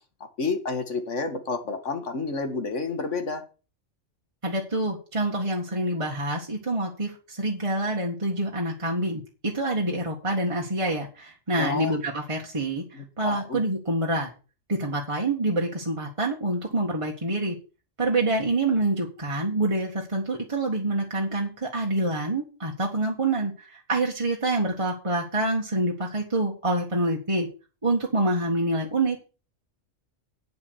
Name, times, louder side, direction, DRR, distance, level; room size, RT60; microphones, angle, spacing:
voice 1, 0.4-3.4 11.6-12.0 12.9-13.6, left 4 dB, 70° left, 7 dB, 2.0 m, -30 dB
voice 2, 4.4-12.8 13.2-14.3 14.7-17.6 18.0-27.5 27.8-29.3, right 2 dB, 25° right, -1 dB, 1.8 m, -26 dB
9.0 x 7.2 x 6.5 m, 0.33 s
omnidirectional pair, 1.3 m